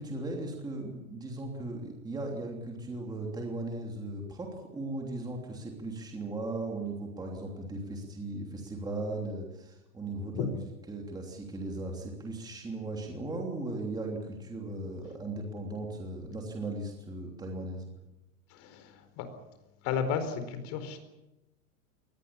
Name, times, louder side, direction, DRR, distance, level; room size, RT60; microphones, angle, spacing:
voice 1, 0.0-10.6 10.9-17.9, right 2 dB, 10° right, 1 dB, 3.1 m, -37 dB
voice 2, 18.5-19.3 19.8-21.0, left 7 dB, 40° left, 9 dB, 4.5 m, -33 dB
22.5 x 19.0 x 8.7 m, 0.98 s
supercardioid pair, 150°, 43 cm